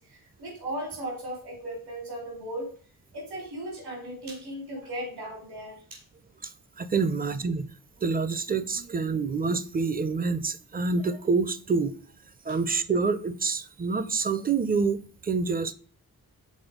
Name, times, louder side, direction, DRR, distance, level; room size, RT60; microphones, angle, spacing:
voice 1, 0.0-2.7 3.1-6.0 12.5-12.6, right 1 dB, 85° right, 4.0 m, -37 dB
voice 2, 6.8-7.7 8.0-11.9 12.5-15.7, right 4 dB, 25° right, 0.5 m, -27 dB
6.3 x 4.3 x 5.0 m
wide cardioid pair, 125°, 38 cm